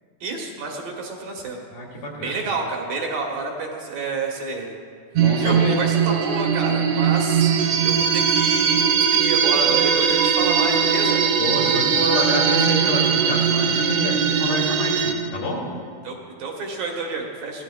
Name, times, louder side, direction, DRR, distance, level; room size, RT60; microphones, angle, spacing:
voice 1, 0.2-1.6 2.2-4.8 5.4-7.5 7.8-11.2 16.0-17.6, right 3 dB, 65° right, 0 dB, 2.8 m, -29 dB
voice 2, 1.7-2.4 5.1-5.8 11.4-15.7, left 1 dB, 65° left, -3 dB, 4.0 m, -28 dB
sound 1, 5.2-15.1, right 7 dB, 80° right, 1.7 m, -20 dB
24.0 x 16.0 x 2.2 m, 2.2 s
omnidirectional pair, 4.7 m